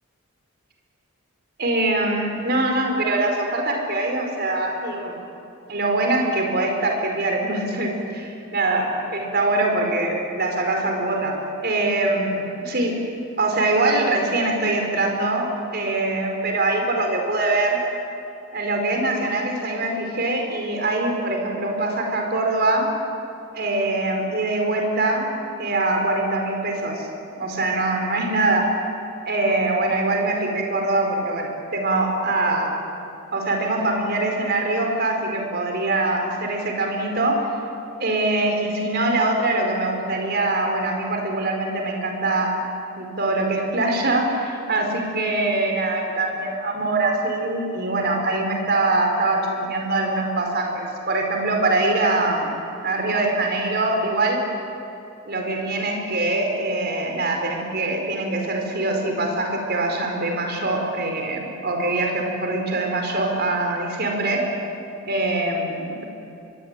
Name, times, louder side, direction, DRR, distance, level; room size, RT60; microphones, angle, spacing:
voice 1, 1.6-5.2 5.7-13.0 13.4-17.8 18.5-22.9 23.5-25.3 25.6-27.1 27.4-28.7 29.2-32.8 33.3-37.5 38.0-42.6 43.0-52.5 52.8-54.5 55.3-64.5 65.1-66.0, right 2 dB, 50° right, 2 dB, 4.7 m, -23 dB
24.5 x 23.5 x 9.1 m, 2.8 s
head